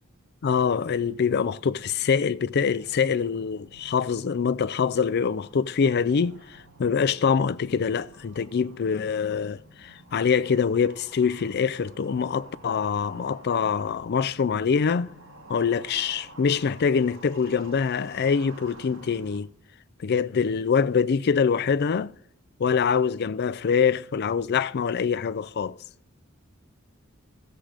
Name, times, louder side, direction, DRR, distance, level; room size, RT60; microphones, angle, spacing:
voice 1, 0.4-6.4 6.8-15.1 15.5-19.5 20.0-22.1 22.6-25.8, left 6 dB, 50° left, 0.4 m, -24 dB
sound 1, 0.7-19.4, right 2 dB, 60° right, 2.0 m, -51 dB
15.5 x 7.5 x 5.0 m
head